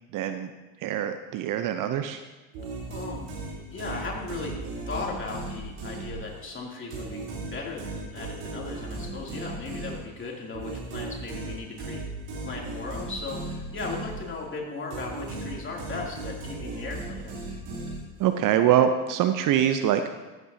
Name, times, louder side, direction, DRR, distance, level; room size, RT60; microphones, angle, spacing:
voice 1, 0.1-0.5 0.8-2.2 18.2-20.0, right 10 dB, 45° right, 9 dB, 0.7 m, -24 dB
sound 1, 2.5-6.5 6.9-14.5 14.9-18.4, right 2 dB, 65° right, 3.5 m, -37 dB
voice 2, 2.9-3.3 3.7-4.5 4.9-7.2 7.5-12.0 12.5-17.4, left 4 dB, 25° left, -2 dB, 2.8 m, -37 dB
13.5 x 9.4 x 2.8 m, 1.2 s
hypercardioid pair, 65°, 45 cm